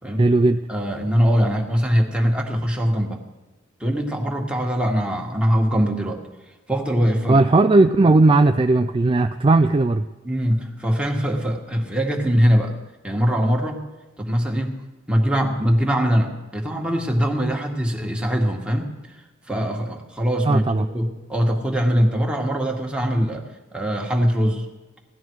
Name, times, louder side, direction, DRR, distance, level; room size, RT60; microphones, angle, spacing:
voice 1, 0.2-0.6 7.3-10.0 20.5-20.9, right 2 dB, 25° right, 7 dB, 0.4 m, -16 dB
voice 2, 0.7-3.2 3.8-6.2 6.7-7.4 10.2-12.7 13.0-13.8 14.2-14.8 15.1-19.2 19.5-23.5 23.7-24.7, equal, 5° right, 0 dB, 1.7 m, -22 dB
17.5 x 12.5 x 4.7 m, 1.1 s
head